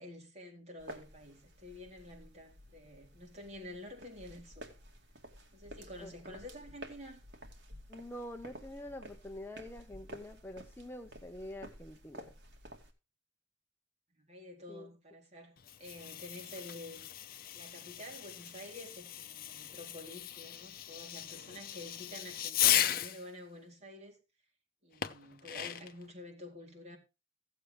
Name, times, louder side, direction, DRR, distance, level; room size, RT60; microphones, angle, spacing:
voice 1, 0.0-4.7 5.5-7.2 14.1-17.0 17.5-24.2 24.8-27.0, left 1 dB, 35° right, 4.1 m, -49 dB
sound 1, 0.8-12.9, right 1 dB, 70° right, 2.4 m, -52 dB
voice 2, 7.9-12.3 14.7-14.9, left 1 dB, 10° left, 0.8 m, -46 dB
Fireworks, 15.6-23.2 25.0-26.0, left 11 dB, 50° left, 0.8 m, -36 dB
16.0 x 7.8 x 3.3 m
head